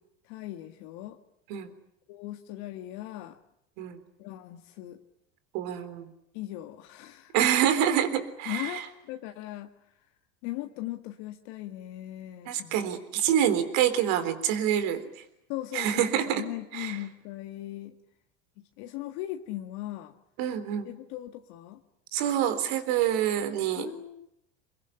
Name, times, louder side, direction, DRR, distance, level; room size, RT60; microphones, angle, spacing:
voice 1, 0.2-1.2 2.1-3.4 4.2-5.0 6.3-7.3 8.5-9.7 10.4-12.8 15.5-18.0 18.6-20.2 20.9-21.8 23.8-24.3, left 15 dB, 70° left, 6 dB, 1.8 m, -39 dB
voice 2, 5.5-6.1 7.3-8.8 12.5-15.2 15.7-16.4 16.7-17.0 20.4-20.9 22.1-23.9, right 10 dB, 65° right, 11 dB, 3.8 m, -26 dB
23.5 x 22.0 x 10.0 m, 0.77 s
supercardioid pair, 100°, 36 cm